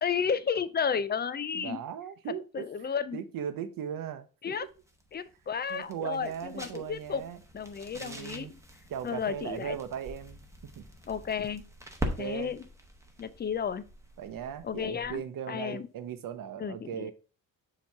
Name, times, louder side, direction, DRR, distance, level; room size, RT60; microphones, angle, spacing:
voice 1, 0.0-1.8 2.3-3.2 4.4-4.7 5.1-7.3 7.5-8.6 9.0-9.8 11.1-11.7 12.2-12.6 13.2-13.9 14.6-15.9 16.6-17.1, left 7 dB, 30° left, 0.4 m, -33 dB
voice 2, 1.6-2.6 3.1-4.3 5.7-7.4 7.9-8.5 8.9-10.4 10.8-10.9 12.0-12.5 14.2-17.1, right 9 dB, 70° right, 0.7 m, -38 dB
sound 1, 4.6-15.3, right 1 dB, 10° right, 1.0 m, -43 dB
7.1 x 3.0 x 4.5 m
cardioid pair, 115°, 35 cm